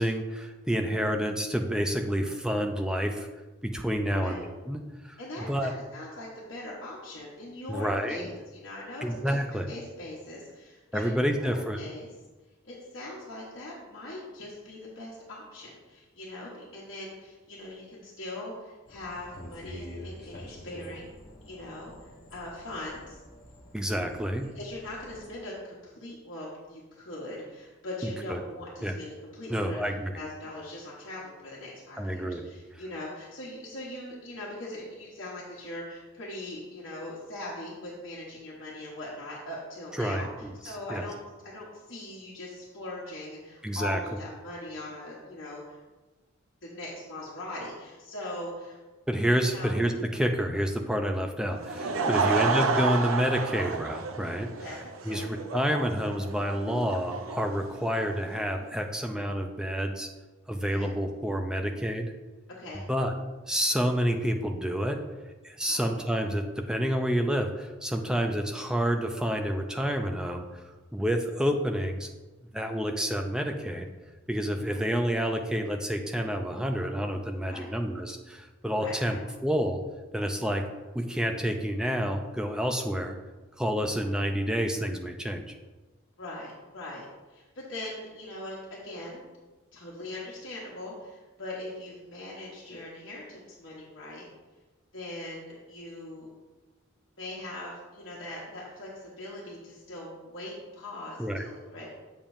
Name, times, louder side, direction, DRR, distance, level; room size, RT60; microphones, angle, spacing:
voice 1, 0.0-3.3 3.6-5.7 7.7-8.3 9.0-9.7 10.9-11.8 23.7-24.5 28.0-28.4 28.8-29.0 29.5-30.1 32.0-32.4 39.9-41.0 43.6-44.0 49.1-54.5 55.0-60.1 60.5-62.1 62.7-63.1 63.5-65.0 65.4-70.4 70.9-72.1 72.5-73.9 74.3-79.8 80.1-80.6 81.0-83.1 83.6-85.5 101.2-101.5, equal, 5° right, 4 dB, 0.4 m, -29 dB
voice 2, 4.1-4.4 5.2-9.4 9.7-12.1 12.6-21.1 21.5-23.2 24.5-29.8 30.1-41.2 41.4-45.8 46.6-48.8 49.5-49.8 52.1-52.4 54.6-55.2 60.7-60.9 62.6-62.8 65.7-66.1 67.9-68.1 74.6-74.8 77.4-77.7 78.7-79.2 86.2-89.3 89.7-94.3 94.9-96.3 97.2-101.9, left 1 dB, 65° left, -6 dB, 1.2 m, -41 dB
sound 1, 18.9-25.3, left 1 dB, 50° left, 1.4 m, -47 dB
Laughter / Crowd, 51.5-58.4, right 4 dB, 90° right, 0.6 m, -30 dB
7.2 x 6.8 x 2.6 m, 1.2 s
head